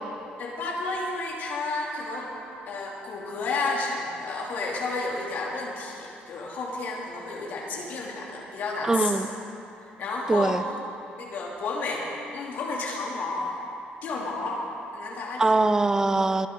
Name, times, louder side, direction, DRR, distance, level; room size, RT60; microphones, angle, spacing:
voice 1, 0.4-2.3 2.7-9.2 10.0-10.6 11.2-12.0 12.3-13.5 14.0-14.6 14.9-15.5, left 3 dB, 70° left, -2 dB, 2.8 m, -31 dB
voice 2, 8.8-9.3 10.3-10.7 15.4-16.5, right 2 dB, 20° right, 12 dB, 0.6 m, -22 dB
22.0 x 10.5 x 3.9 m, 2.8 s
cardioid pair, 95°, 3 cm